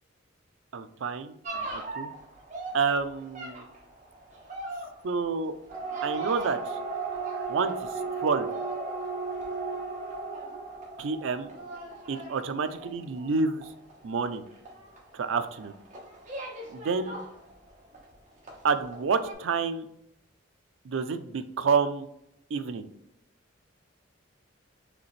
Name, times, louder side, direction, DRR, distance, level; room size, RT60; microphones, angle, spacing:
voice 1, 0.7-2.1 2.7-3.7 5.0-5.5 6.0-6.8 7.5-7.9 8.2-8.5 11.0-11.5 12.1-13.7 14.0-14.4 15.1-15.7 16.7-17.2 18.6-19.9 20.8-22.1 22.5-22.9, right 5 dB, 75° right, 9 dB, 0.4 m, -29 dB
sound 1, 1.4-18.1 18.4-19.0 19.2-19.3, right 3 dB, 35° right, 1.2 m, -37 dB
5.0 x 3.3 x 3.1 m, 0.79 s
head